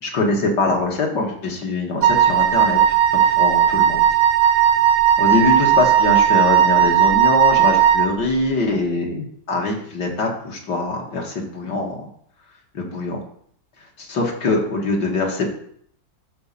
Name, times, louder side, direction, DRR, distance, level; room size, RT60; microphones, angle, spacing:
voice 1, 0.0-2.8 3.1-4.1 4.5-4.7 5.2-12.1 12.7-13.2 14.1-15.5, left 3 dB, 70° left, 0 dB, 2.4 m, -23 dB
Wind instrument woodwind instrument, 2.0-8.1, right 10 dB, 90° right, 1.7 m, -16 dB
10.5 x 4.3 x 7.1 m, 0.64 s
omnidirectional pair, 1.9 m